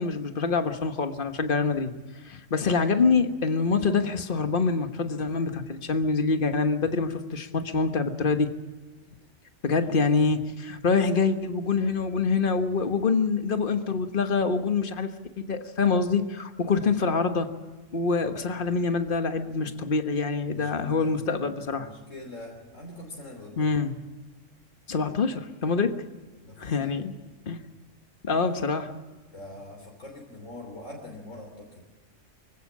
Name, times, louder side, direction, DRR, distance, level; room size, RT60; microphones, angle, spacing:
voice 1, 0.0-1.9 2.2-8.5 9.6-15.1 15.4-17.6 17.9-21.9 23.6-23.9 24.9-26.0 26.6-27.1 27.5-27.6 28.2-28.9, left 4 dB, 45° left, 7 dB, 1.5 m, -25 dB
voice 2, 20.5-21.2 21.7-23.7 26.4-27.1 29.3-31.9, left 2 dB, 85° left, 1 dB, 3.7 m, -43 dB
25.0 x 16.0 x 7.4 m, 1.3 s
omnidirectional pair, 1.3 m